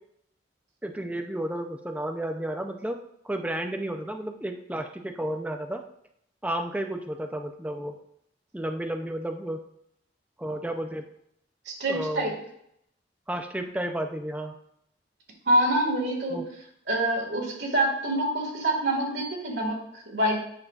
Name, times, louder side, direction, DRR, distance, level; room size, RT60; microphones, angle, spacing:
voice 1, 0.8-3.0 3.2-5.8 6.4-8.0 8.5-9.6 10.4-11.1 11.9-12.3 13.3-14.6 16.3-16.4, right 1 dB, 10° right, 5 dB, 0.4 m, -32 dB
voice 2, 11.7-12.4 15.5-16.4 16.9-20.4, right 1 dB, 75° right, -1 dB, 1.8 m, -26 dB
8.8 x 5.4 x 2.4 m, 0.73 s
head